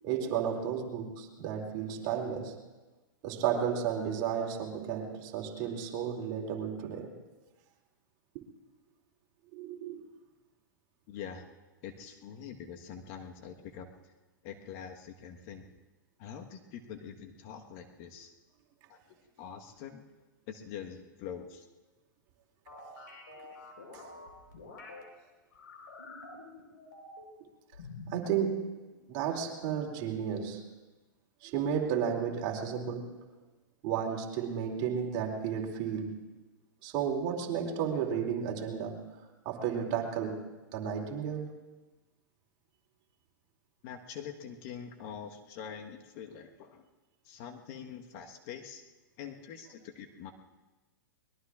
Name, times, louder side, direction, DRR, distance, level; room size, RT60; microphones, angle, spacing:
voice 1, 0.0-2.6 3.2-7.1 9.5-10.0 23.9-24.0 28.1-30.7 31.4-33.2 33.8-36.2 36.8-39.0 39.4-40.5 40.7-41.5, right 8 dB, 45° right, 1 dB, 2.7 m, -33 dB
voice 2, 11.1-11.4 11.8-13.9 14.4-15.7 16.2-18.3 18.9-20.0 20.5-21.7 43.8-46.9 47.2-48.8 49.2-50.3, left 8 dB, 45° left, 4 dB, 1.3 m, -44 dB
sound 1, 22.7-25.0 25.5-27.4 27.7-28.3, left 2 dB, 80° left, 4.2 m, -48 dB
24.0 x 21.0 x 2.4 m, 1.2 s
hypercardioid pair, 110°, 11 cm